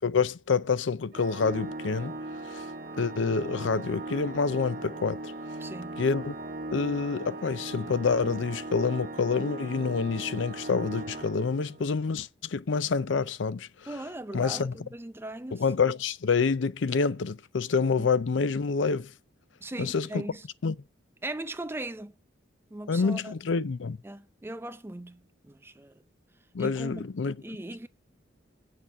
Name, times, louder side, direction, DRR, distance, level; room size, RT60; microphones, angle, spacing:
voice 1, 0.0-2.2 2.4-2.7 3.0-5.3 6.0-6.3 6.7-13.7 14.3-14.7 15.5-19.1 19.8-20.3 20.6-20.8 22.9-24.0 26.5-27.4, left 5 dB, 75° left, 0.5 m, -27 dB
Organ, 1.1-12.0, right 2 dB, 50° right, 1.8 m, -38 dB
voice 2, 5.6-6.0 13.9-15.6 18.0-18.1 19.6-20.5 21.2-22.1 22.7-23.3 24.0-25.9 26.6-27.1 27.4-27.9, right 1 dB, 15° right, 0.5 m, -39 dB
8.3 x 6.7 x 7.2 m
head